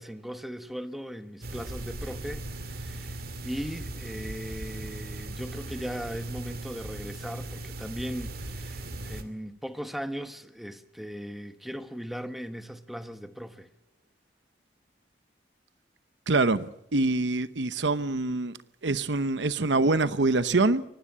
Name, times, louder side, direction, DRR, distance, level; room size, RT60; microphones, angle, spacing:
voice 1, 0.0-13.7, equal, ahead, 1.1 m, -38 dB
sound 1, 1.4-9.2, right 2 dB, 55° right, 2.4 m, -38 dB
voice 2, 16.3-18.6 18.8-20.8, right 3 dB, 75° right, 0.9 m, -25 dB
23.5 x 18.5 x 8.6 m
head